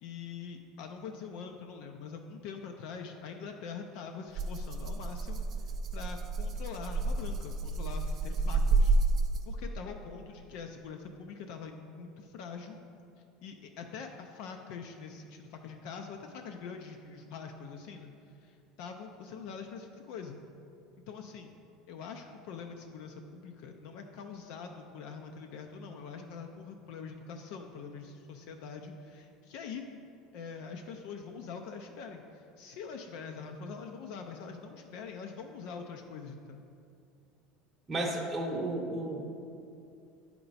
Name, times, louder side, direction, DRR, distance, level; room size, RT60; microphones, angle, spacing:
voice 1, 0.0-5.4 5.9-8.9 9.5-12.8 13.4-18.1 18.4-20.4 21.1-21.5 21.9-29.8 30.3-36.7, left 5 dB, 60° left, 4 dB, 0.5 m, -44 dB
Rattle (instrument), 4.3-9.7, right 3 dB, 30° right, 0.4 m, -30 dB
voice 2, 37.9-39.4, right 1 dB, 15° right, -2 dB, 0.9 m, -33 dB
9.5 x 4.4 x 4.0 m, 2.5 s
cardioid pair, 155°, 0 cm